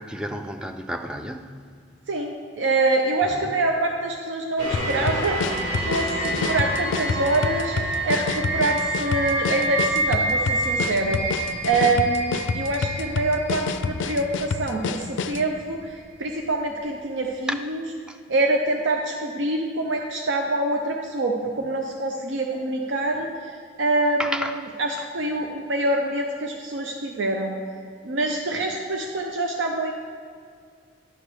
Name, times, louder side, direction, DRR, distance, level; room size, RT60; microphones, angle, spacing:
voice 1, 0.0-1.6 3.2-3.5 17.5-17.6 18.1-18.2 24.2-24.6, equal, 5° right, 6 dB, 0.3 m, -31 dB
voice 2, 2.1-11.4 11.6-17.8 18.3-24.5 24.8-27.6 28.0-29.9, right 2 dB, 85° right, 2 dB, 0.6 m, -25 dB
sound 1, 4.6-15.7 16.2-16.3, right 2 dB, 30° right, 1.9 m, -28 dB
sound 2, 4.7-15.5, left 5 dB, 80° left, 0.3 m, -29 dB
11.0 x 6.2 x 3.4 m, 2.1 s
head